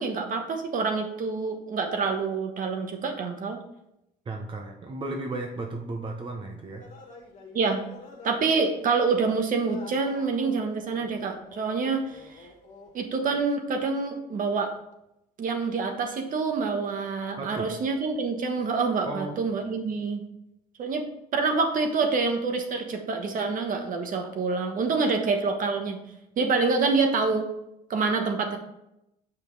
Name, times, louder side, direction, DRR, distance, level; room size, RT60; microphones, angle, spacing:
voice 1, 0.0-3.6 7.5-7.8 8.2-12.5 12.9-14.7 15.4-20.2 20.8-21.1 21.3-26.0 26.4-27.5 27.9-28.6, right 4 dB, 55° right, 5 dB, 1.3 m, -27 dB
voice 2, 4.3-6.9 17.4-17.7 19.0-19.3, right 2 dB, 30° right, 2 dB, 0.9 m, -34 dB
sound 1, 6.8-13.0 13.2-13.4, left 4 dB, 45° left, 1.8 m, -47 dB
6.9 x 5.5 x 4.0 m, 0.84 s
cardioid pair, 110°, 17 cm